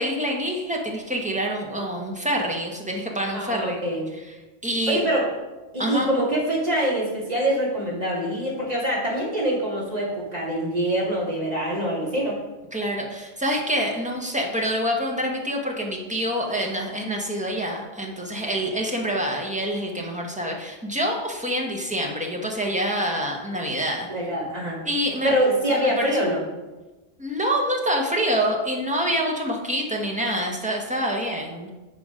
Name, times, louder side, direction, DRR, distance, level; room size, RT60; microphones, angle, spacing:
voice 1, 0.0-3.8 4.6-5.0 5.8-6.1 12.7-24.1 24.8-25.3 25.7-26.1 27.2-31.7, equal, 5° right, 0 dB, 1.1 m, -26 dB
voice 2, 3.3-4.0 4.9-5.2 5.7-12.4 24.1-24.8 25.2-26.4, right 1 dB, 30° right, -5 dB, 2.4 m, -24 dB
7.9 x 5.0 x 5.0 m, 1.1 s
omnidirectional pair, 1.3 m